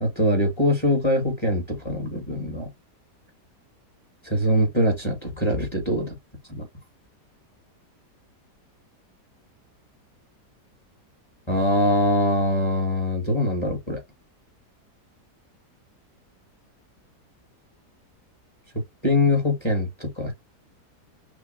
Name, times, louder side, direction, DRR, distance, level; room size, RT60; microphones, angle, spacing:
voice 1, 0.0-2.7 4.2-6.2 6.5-6.7 11.5-14.0 19.0-20.3, left 1 dB, 20° left, 1.3 m, -23 dB
6.1 x 2.3 x 2.5 m
omnidirectional pair, 1.8 m